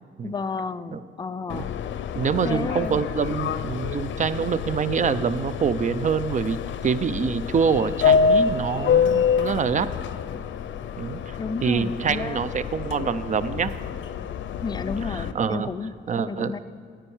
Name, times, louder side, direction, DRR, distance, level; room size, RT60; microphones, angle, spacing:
voice 1, 0.2-1.7 2.4-3.0 11.4-12.4 14.6-15.9 16.3-16.6, left 4 dB, 20° left, 12 dB, 0.4 m, -32 dB
Subway metro underground, 1.5-15.3, left 6 dB, 80° left, 0.6 m, -27 dB
voice 2, 2.1-9.9 11.0-13.7 15.0-15.7 16.1-16.5, right 6 dB, 40° right, 14 dB, 0.5 m, -25 dB
9.9 x 8.8 x 7.1 m, 2.3 s
cardioid pair, 105°, 19 cm